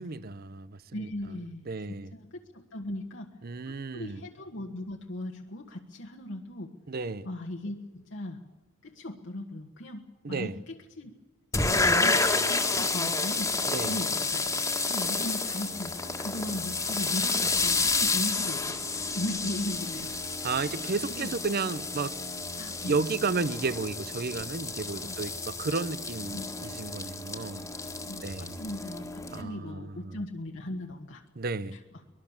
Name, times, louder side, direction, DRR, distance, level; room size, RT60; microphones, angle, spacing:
voice 1, 0.0-1.1 1.7-2.1 3.4-4.2 6.9-7.3 10.2-10.6 13.7-14.0 20.4-22.2 22.8-27.7 28.2-28.6 29.3-30.2 31.4-31.8, right 4 dB, 50° right, 0.7 m, -33 dB
voice 2, 0.9-3.3 3.6-6.7 7.2-8.4 8.8-11.1 11.6-13.5 13.8-14.5 14.9-18.8 19.1-20.1 21.1-21.3 22.6-23.0 25.0-25.2 26.3-26.4 28.1-31.2 31.7-31.8, left 1 dB, 65° left, 1.6 m, -38 dB
sound 1, 11.5-29.4, left 3 dB, 15° left, 1.8 m, -30 dB
24.0 x 20.0 x 7.3 m
head